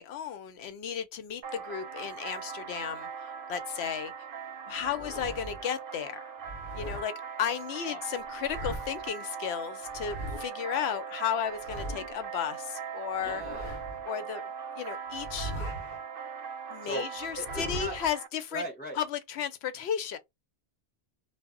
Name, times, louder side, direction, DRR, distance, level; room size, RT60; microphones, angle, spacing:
voice 1, 0.0-3.1 3.5-4.1 4.7-6.2 6.7-7.1 7.4-13.4 14.0-14.5 14.8-15.5 16.7-18.6 18.9-20.2, left 8 dB, 90° left, 0.8 m, -34 dB
sound 1, 1.4-18.3, right 6 dB, 65° right, 0.7 m, -40 dB
sound 2, 4.7-5.6 6.4-7.1 8.2-9.1 9.9-10.5 11.4-12.3 13.1-14.1 15.1-16.0 17.2-18.1, equal, 55° left, 0.8 m, -40 dB
voice 2, 13.2-13.7 16.8-17.1 17.3-18.0 18.5-19.0, right 1 dB, 10° left, 0.5 m, -38 dB
2.1 x 2.0 x 3.5 m
omnidirectional pair, 1.0 m